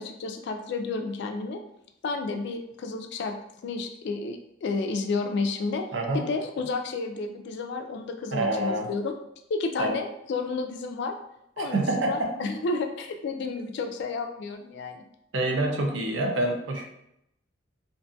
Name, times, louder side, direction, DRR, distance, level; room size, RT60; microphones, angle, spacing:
voice 1, 0.0-1.6 2.0-3.4 3.6-5.8 6.1-9.2 9.5-11.1 11.6-15.0, left 3 dB, 60° left, 6 dB, 0.3 m, -31 dB
voice 2, 8.3-8.9 9.8-10.0 11.6-12.3 15.3-16.8, right 2 dB, 70° right, 2 dB, 0.5 m, -26 dB
2.6 x 2.2 x 2.6 m, 0.80 s
head